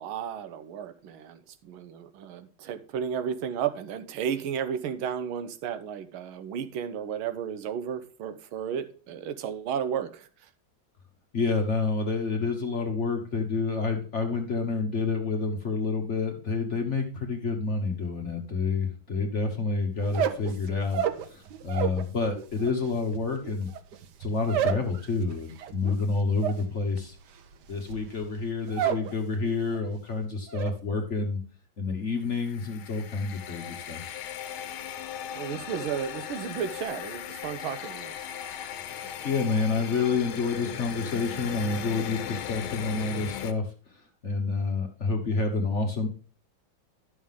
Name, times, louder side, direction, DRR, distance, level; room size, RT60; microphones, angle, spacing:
voice 1, 0.0-10.3 35.3-38.1, right 8 dB, 85° right, 10 dB, 1.6 m, -33 dB
voice 2, 11.3-23.7 24.2-27.2 27.7-31.4 31.8-34.0 38.9-46.1, left 4 dB, 45° left, 4 dB, 1.1 m, -29 dB
sound 1, 20.0-22.1 22.3-29.1 29.4-29.9 30.2-30.7, right 9 dB, 65° right, 1.2 m, -31 dB
sound 2, 32.3-43.5, left 9 dB, 80° left, 1.5 m, -37 dB
11.0 x 6.4 x 3.6 m, 0.39 s
omnidirectional pair, 2.3 m